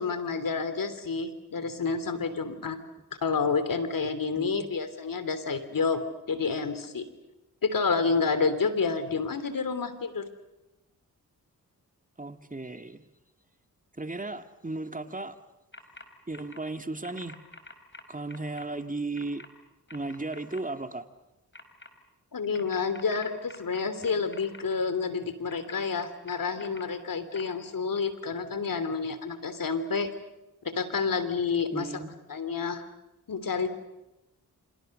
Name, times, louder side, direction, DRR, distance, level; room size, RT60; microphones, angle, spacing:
voice 1, 0.0-2.8 3.2-7.1 7.6-10.3 22.3-30.1 30.6-32.0 32.3-32.9 33.3-33.7, left 5 dB, 65° left, 12 dB, 3.2 m, -29 dB
voice 2, 12.2-13.0 13.9-15.4 16.3-17.4 18.1-19.4 19.9-21.1 31.7-32.2, right 2 dB, 20° right, 8 dB, 2.4 m, -35 dB
sound 1, 15.7-16.0 16.3-16.6 17.0-18.6 19.1-19.5 19.9-20.6 21.5-21.9 22.5-24.6 25.5-26.8 27.3-27.4, left 2 dB, 30° left, 4.2 m, -47 dB
28.5 x 26.5 x 6.7 m, 0.97 s
supercardioid pair, 40°, 37 cm